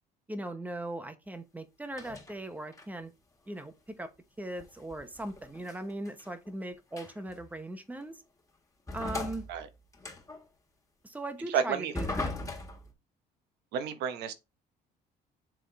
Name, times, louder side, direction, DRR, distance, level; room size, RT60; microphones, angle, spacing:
voice 1, 0.3-3.1 3.5-4.1 4.4-8.2 8.9-9.5 11.0-12.3, right 1 dB, 10° right, 1.0 m, -39 dB
sound 1, 1.9-2.3 2.7-3.0 4.6-6.5 6.9-7.3 8.0-8.1 8.9-10.4 11.9-12.9, left 2 dB, 20° left, 1.8 m, -38 dB
voice 2, 11.5-11.9 13.7-14.3, right 7 dB, 85° right, 1.0 m, -30 dB
7.5 x 3.7 x 3.4 m
cardioid pair, 110°, 17 cm